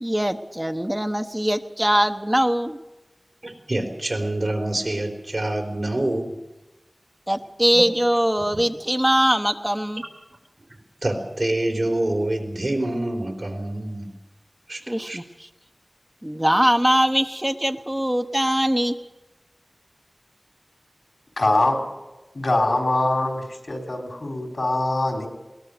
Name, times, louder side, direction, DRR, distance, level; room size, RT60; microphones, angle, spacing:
voice 1, 0.0-2.8 7.3-10.0 14.9-15.5 16.2-19.0, equal, 15° right, 7 dB, 1.0 m, -22 dB
voice 2, 3.4-6.4 7.7-7.9 8.4-8.6 11.0-14.1 14.7-15.2, right 1 dB, 65° right, 2 dB, 3.6 m, -26 dB
voice 3, 21.4-21.8 22.3-25.3, left 2 dB, 85° left, 2 dB, 3.8 m, -23 dB
21.0 x 18.5 x 6.8 m, 1.1 s
wide cardioid pair, 45°, 0 cm